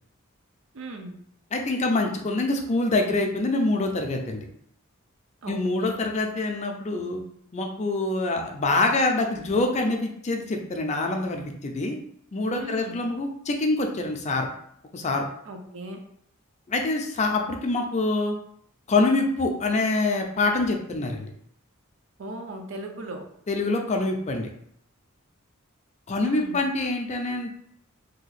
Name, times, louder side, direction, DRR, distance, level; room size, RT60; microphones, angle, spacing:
voice 1, 0.7-1.2 5.4-5.9 12.6-13.0 15.5-16.0 22.2-23.3 26.2-26.6, right 1 dB, 65° right, 4 dB, 0.5 m, -37 dB
voice 2, 1.5-4.4 5.5-7.2 7.5-12.0 12.3-14.5 14.9-15.2 16.7-18.4 18.9-21.3 23.5-24.5 26.1-27.5, left 2 dB, 35° left, 3 dB, 0.4 m, -25 dB
2.8 x 2.3 x 4.0 m, 0.68 s
head